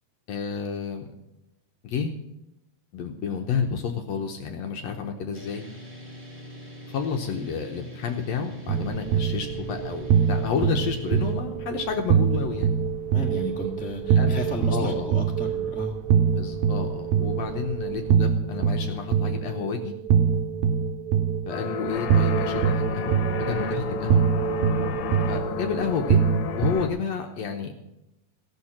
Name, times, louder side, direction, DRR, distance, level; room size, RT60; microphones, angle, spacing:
voice 1, 0.3-1.0 1.8-2.1 2.9-5.6 6.9-12.7 14.2-14.3 14.7-15.1 16.4-19.9 21.5-23.2 23.5-24.2 25.3-26.2 26.6-27.7, left 6 dB, 70° left, 4 dB, 1.8 m, -30 dB
sound 1, 5.3-11.3, left 2 dB, 20° right, 1.3 m, -42 dB
sound 2, 8.7-26.7, right 7 dB, 75° right, 1.9 m, -24 dB
voice 2, 13.1-15.9, equal, 5° left, 0 dB, 0.6 m, -33 dB
sound 3, 21.5-26.9, left 7 dB, 90° left, 2.4 m, -32 dB
15.0 x 6.5 x 7.3 m, 0.89 s
omnidirectional pair, 3.7 m